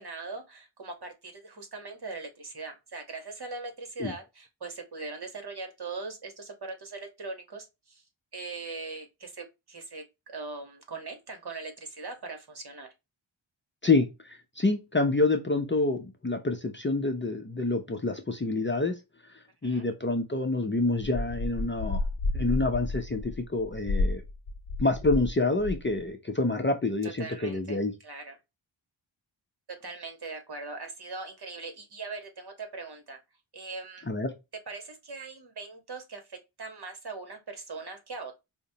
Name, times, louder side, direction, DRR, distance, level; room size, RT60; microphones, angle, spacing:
voice 1, 0.0-8.0 8.3-12.9 19.6-19.9 27.0-28.4 29.8-33.2 33.5-34.0 34.7-38.3, right 3 dB, 50° right, 1.2 m, -40 dB
voice 2, 13.8-19.0 19.6-22.1 22.3-24.2 24.8-27.9 34.1-34.3, left 2 dB, 25° left, 0.5 m, -27 dB
sound 1, 21.1-25.3 25.6-26.0, left 2 dB, 75° left, 0.7 m, -31 dB
5.0 x 2.1 x 2.7 m
wide cardioid pair, 90°, 48 cm